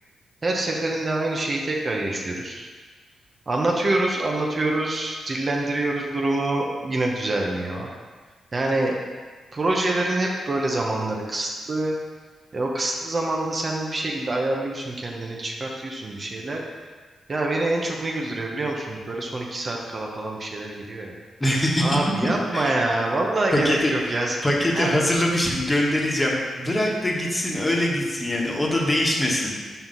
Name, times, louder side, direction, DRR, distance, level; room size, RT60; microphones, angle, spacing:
voice 1, 0.4-2.7 3.5-7.9 8.5-9.0 9.5-11.9 12.5-16.6 17.3-21.1 21.8-24.4 24.7-24.9, right 2 dB, 45° right, -1 dB, 0.9 m, -26 dB
voice 2, 21.4-22.7 23.5-29.6, left 1 dB, 25° left, -2 dB, 1.4 m, -23 dB
5.4 x 4.6 x 3.9 m, 1.5 s
supercardioid pair, 50°, 0 cm